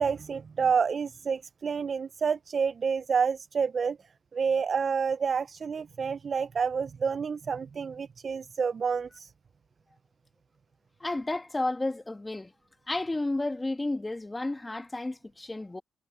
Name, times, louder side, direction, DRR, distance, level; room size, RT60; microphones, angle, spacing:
voice 1, 0.0-4.0 4.3-9.3, right 6 dB, 45° right, 0.4 m, -29 dB
voice 2, 11.0-12.5 12.9-15.8, left 2 dB, 15° left, 1.7 m, -32 dB
cardioid pair, 90°, 0 cm